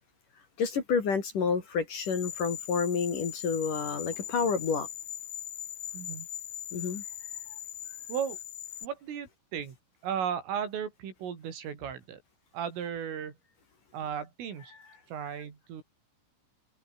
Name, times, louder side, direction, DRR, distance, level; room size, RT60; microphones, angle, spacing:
voice 1, 0.6-4.9 6.7-7.0, left 5 dB, 45° left, 4.1 m, -29 dB
sound 1, 1.9-8.9, left 11 dB, 60° left, 2.2 m, -40 dB
voice 2, 5.9-6.3 8.1-8.4 8.8-9.8 10.0-12.2 12.5-13.4 13.9-14.8 15.1-15.8, right 8 dB, 80° right, 6.4 m, -35 dB
omnidirectional pair, 5.8 m